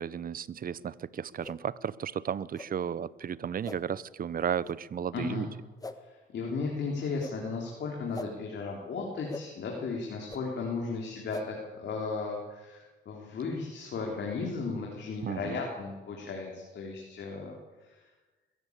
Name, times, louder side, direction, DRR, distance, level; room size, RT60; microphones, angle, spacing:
voice 1, 0.0-5.5 15.2-15.6, right 8 dB, 45° right, 19 dB, 0.8 m, -34 dB
sound 1, 1.4-1.6 2.5-2.7 3.6-3.8 4.6-4.8 5.8-6.0 7.2-7.4 8.1-8.3 9.3-9.4 10.3-10.4 11.3-11.4, left 2 dB, 20° left, 1.5 m, -40 dB
voice 2, 5.1-5.5 6.3-17.5, left 4 dB, 60° left, -1 dB, 3.8 m, -35 dB
22.0 x 14.0 x 8.2 m, 1.2 s
cardioid pair, 90°, 20 cm